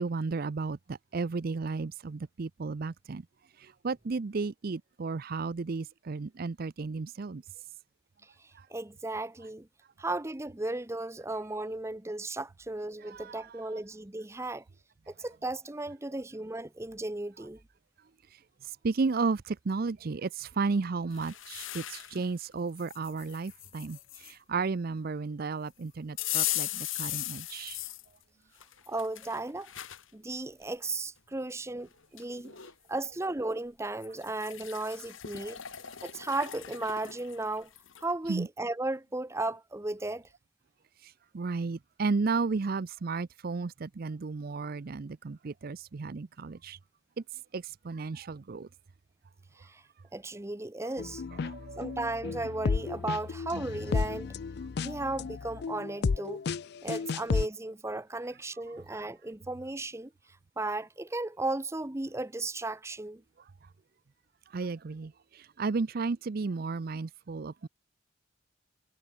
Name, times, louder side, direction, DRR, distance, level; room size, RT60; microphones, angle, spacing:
voice 1, 0.0-3.3 3.6-7.4 8.5-8.7 13.0-13.8 14.4-14.5 18.3-27.8 32.5-32.6 38.3-38.5 41.0-46.8 47.2-47.3 47.5-48.7 50.8-50.9 51.3-52.2 64.5-67.7, right 4 dB, 50° right, 0.5 m, -34 dB
voice 2, 8.7-9.7 10.0-14.6 15.1-17.6 28.9-29.7 30.1-32.5 32.9-35.6 36.0-37.7 38.0-40.2 49.6-49.8 50.1-51.2 51.8-54.3 54.8-56.4 56.8-60.1 60.6-63.2, right 2 dB, 15° right, 0.7 m, -35 dB
sound 1, 21.1-22.3 22.8-24.3 26.2-28.1 28.6-30.0 30.6-30.7 31.8-31.9 32.2-32.7 34.0-38.1, left 14 dB, 85° left, 1.8 m, -38 dB
sound 2, 51.0-57.5, left 5 dB, 55° left, 0.4 m, -33 dB
head